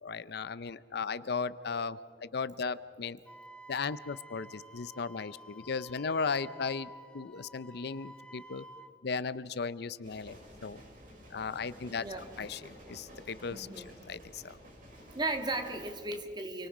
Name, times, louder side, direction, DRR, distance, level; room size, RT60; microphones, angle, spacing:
voice 1, 0.0-3.2 3.7-8.7 9.0-10.8 11.3-12.1 12.4-14.6, left 5 dB, 65° left, 16 dB, 0.6 m, -36 dB
Wind instrument woodwind instrument, 3.3-8.9, right 1 dB, 5° left, 1.0 m, -51 dB
sound 1, 10.0-15.9, equal, 50° right, 6.5 m, -52 dB
voice 2, 11.9-12.3 13.5-13.9 15.1-16.7, right 2 dB, 25° right, 6 dB, 1.8 m, -36 dB
28.5 x 24.5 x 5.0 m, 2.3 s
head